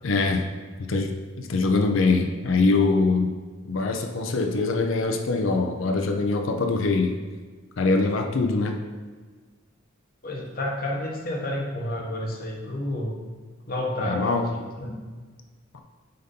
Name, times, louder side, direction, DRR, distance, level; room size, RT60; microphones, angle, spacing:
voice 1, 0.0-0.4 0.8-1.1 1.4-3.3 3.6-7.1 7.8-8.8 14.0-14.5 15.7-15.8, left 3 dB, 75° left, 4 dB, 0.6 m, -23 dB
voice 2, 10.2-13.2 13.7-15.0, left 1 dB, 45° left, 0 dB, 1.0 m, -30 dB
7.8 x 2.7 x 5.2 m, 1.5 s
head